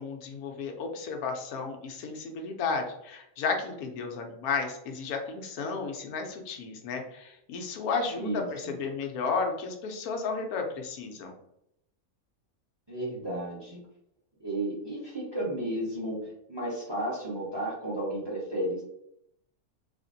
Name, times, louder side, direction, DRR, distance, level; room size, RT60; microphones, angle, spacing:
voice 1, 0.0-11.3, left 4 dB, 90° left, 3 dB, 1.1 m, -33 dB
voice 2, 8.1-8.7 12.9-13.8 14.4-16.2 16.5-18.8, right 1 dB, 20° right, -6 dB, 1.1 m, -33 dB
3.4 x 2.5 x 2.6 m, 0.79 s
omnidirectional pair, 1.5 m